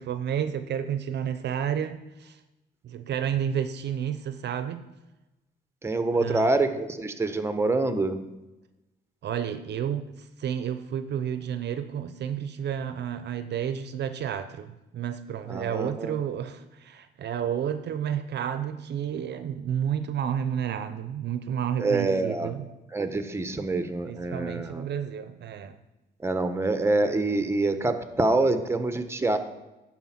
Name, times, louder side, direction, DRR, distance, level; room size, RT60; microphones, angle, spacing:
voice 1, 0.0-2.4 2.8-4.8 6.2-6.5 9.2-22.7 24.1-25.8, right 9 dB, 60° right, 11 dB, 0.6 m, -31 dB
voice 2, 5.8-8.2 15.5-16.2 21.8-22.5 22.9-24.8 26.2-29.4, right 2 dB, 15° right, 9 dB, 0.8 m, -26 dB
10.0 x 4.2 x 5.8 m, 1.0 s
cardioid pair, 90°, 20 cm